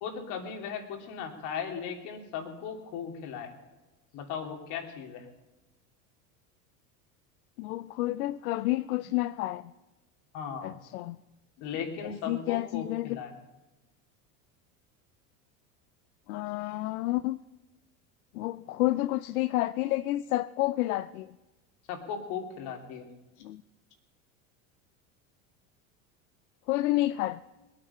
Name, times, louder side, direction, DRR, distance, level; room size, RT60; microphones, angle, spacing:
voice 1, 0.0-3.5 4.1-5.2 10.3-10.7 11.6-13.3 21.9-23.0, left 7 dB, 65° left, 3 dB, 3.0 m, -37 dB
voice 2, 7.6-9.6 10.6-11.2 12.0-13.1 16.3-17.4 18.3-21.3 23.4-23.6 26.7-27.4, left 17 dB, 90° left, 14 dB, 0.5 m, -30 dB
20.5 x 9.1 x 5.5 m, 1.1 s
supercardioid pair, 100°, 42 cm